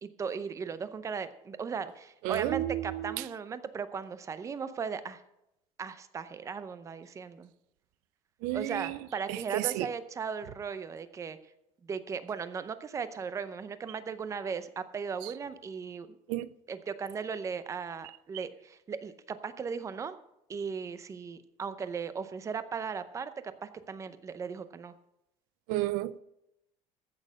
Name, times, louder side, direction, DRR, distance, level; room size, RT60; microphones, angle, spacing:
voice 1, 0.0-5.2 5.8-7.5 8.5-11.4 11.8-16.2 16.7-20.2 20.5-24.9, right 6 dB, 20° right, 0.7 m, -37 dB
voice 2, 2.2-3.3 8.4-9.0 9.3-9.9 15.2-15.3 16.3-16.5 25.7-26.2, right 15 dB, 85° right, 0.6 m, -32 dB
14.5 x 6.5 x 6.4 m
cardioid pair, 165°, 14 cm